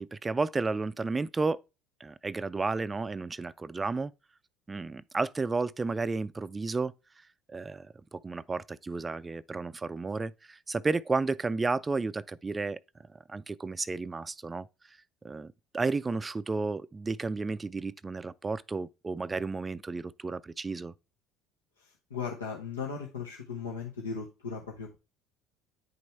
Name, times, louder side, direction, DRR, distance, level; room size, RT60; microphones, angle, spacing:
voice 1, 0.0-1.6 2.0-4.1 4.7-6.9 7.5-12.8 13.3-14.7 15.2-20.9, right 3 dB, 20° right, 0.3 m, -32 dB
voice 2, 21.8-25.0, left 5 dB, 90° left, 0.9 m, -37 dB
9.3 x 5.3 x 3.2 m
hypercardioid pair, 65°, 0 cm